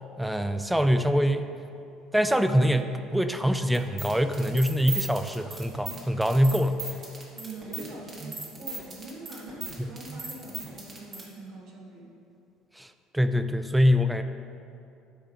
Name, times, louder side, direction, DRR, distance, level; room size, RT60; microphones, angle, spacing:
voice 1, 0.2-1.5 2.1-6.8 9.8-9.9 12.8-12.9 13.1-14.2, equal, 5° right, 9 dB, 0.4 m, -24 dB
sound 1, 3.7-11.2, right 4 dB, 40° right, 1.5 m, -37 dB
voice 2, 7.3-12.1, right 2 dB, 60° right, -2 dB, 1.5 m, -43 dB
9.4 x 3.7 x 4.7 m, 2.6 s
figure-of-eight pair, 60°, 0 cm